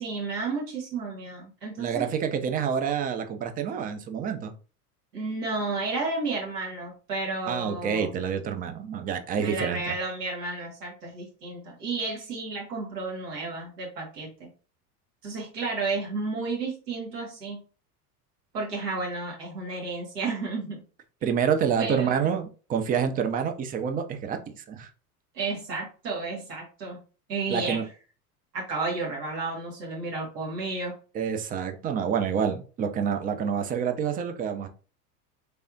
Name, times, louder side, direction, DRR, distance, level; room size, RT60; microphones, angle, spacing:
voice 1, 0.0-2.1 5.1-8.1 9.4-14.5 15.2-17.6 18.5-20.8 21.8-22.2 25.3-27.0 27.3-27.8 28.5-30.9, right 3 dB, 75° right, -2 dB, 2.0 m, -32 dB
voice 2, 1.8-4.5 7.5-9.9 21.2-24.9 27.5-27.8 31.1-34.7, right 7 dB, 20° right, 7 dB, 0.4 m, -28 dB
3.4 x 3.3 x 2.6 m, 0.37 s
hypercardioid pair, 85°, 47 cm